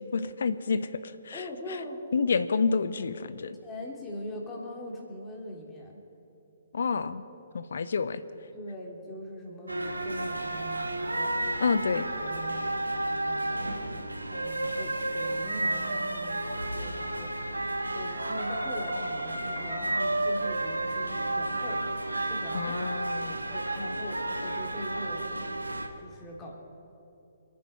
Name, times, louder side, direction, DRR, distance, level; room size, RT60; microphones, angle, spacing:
voice 1, 0.1-1.4 2.1-3.6 6.7-7.2 7.5-8.2 11.6-12.1 22.5-23.4, left 5 dB, 65° left, 13 dB, 0.7 m, -28 dB
voice 2, 1.3-2.0 3.6-6.0 8.5-11.3 12.2-12.6 13.0-17.6 17.9-21.8 22.2-22.8 23.1-25.3 26.0-26.6, equal, 15° left, -1 dB, 3.1 m, -42 dB
sound 1, 9.7-25.9, right 1 dB, 90° right, 1.4 m, -32 dB
26.0 x 9.4 x 5.7 m, 3.0 s
figure-of-eight pair, 130°, 0 cm